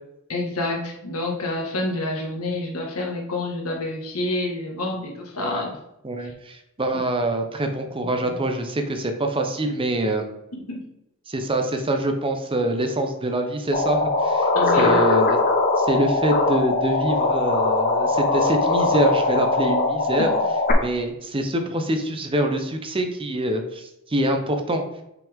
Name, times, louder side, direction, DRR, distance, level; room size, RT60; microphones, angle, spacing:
voice 1, 0.3-5.7 6.2-6.3 6.9-7.0 8.0-8.3 10.5-10.8 14.5-15.0 20.2-20.3, left 2 dB, 80° left, 0 dB, 1.6 m, -28 dB
voice 2, 6.0-10.3 11.3-14.5 14.8-15.4 15.8-20.3 20.8-24.8, right 1 dB, 25° right, 5 dB, 0.7 m, -25 dB
sound 1, 13.7-20.7, left 3 dB, 45° left, 1.0 m, -21 dB
5.9 x 5.4 x 3.5 m, 0.85 s
head